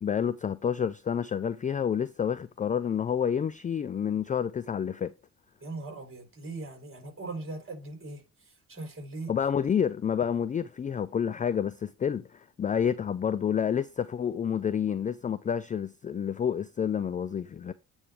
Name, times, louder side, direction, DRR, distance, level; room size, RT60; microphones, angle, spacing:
voice 1, 0.0-5.1 9.3-17.7, left 8 dB, 20° left, 0.4 m, -29 dB
voice 2, 5.6-9.3, right 3 dB, 30° right, 3.8 m, -40 dB
8.8 x 3.3 x 4.9 m
figure-of-eight pair, 45°, 41 cm